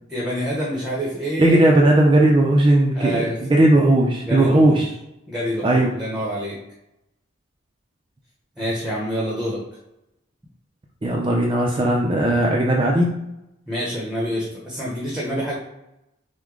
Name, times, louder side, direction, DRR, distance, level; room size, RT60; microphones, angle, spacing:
voice 1, 0.1-1.6 2.9-3.4 4.3-4.8 5.3-6.6 8.6-9.6 13.7-15.5, equal, 5° right, -4 dB, 0.9 m, -27 dB
voice 2, 1.4-4.9 5.6-6.0 11.0-13.1, right 1 dB, 25° right, -1 dB, 0.5 m, -17 dB
6.1 x 2.2 x 3.8 m, 0.89 s
head